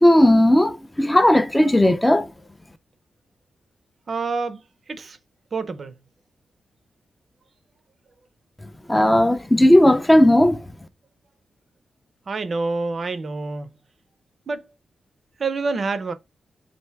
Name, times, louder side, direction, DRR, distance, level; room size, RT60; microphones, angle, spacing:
voice 1, 0.0-2.3 8.9-10.6, left 1 dB, 10° left, 0.4 m, -15 dB
voice 2, 4.1-4.6 4.9-5.2 5.5-5.9 12.3-13.7 14.5-14.7 15.4-16.1, right 3 dB, 45° right, 0.5 m, -27 dB
3.3 x 2.6 x 4.3 m
wide cardioid pair, 145°, 0 cm